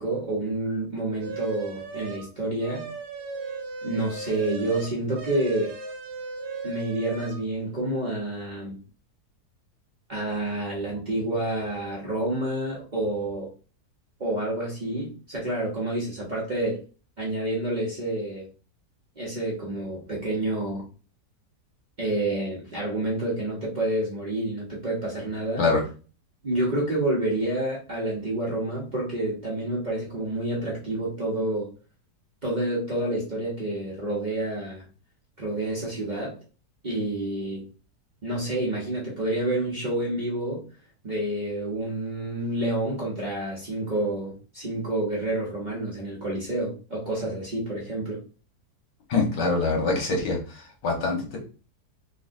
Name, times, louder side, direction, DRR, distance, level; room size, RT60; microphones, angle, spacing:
voice 1, 0.0-2.8 3.8-5.7 6.6-8.8 10.1-13.5 14.2-16.8 17.2-18.5 19.2-20.9 22.0-25.6 26.4-31.7 32.4-34.9 35.4-36.4 36.8-37.7 38.2-40.6 41.0-48.2, right 1 dB, 40° right, -5 dB, 0.7 m, -28 dB
sound 1, 1.2-2.3 2.6-7.4, right 4 dB, 75° right, 1.4 m, -37 dB
voice 2, 49.1-51.4, left 3 dB, 85° left, 0 dB, 1.7 m, -24 dB
4.0 x 2.4 x 2.6 m, 0.36 s
omnidirectional pair, 1.8 m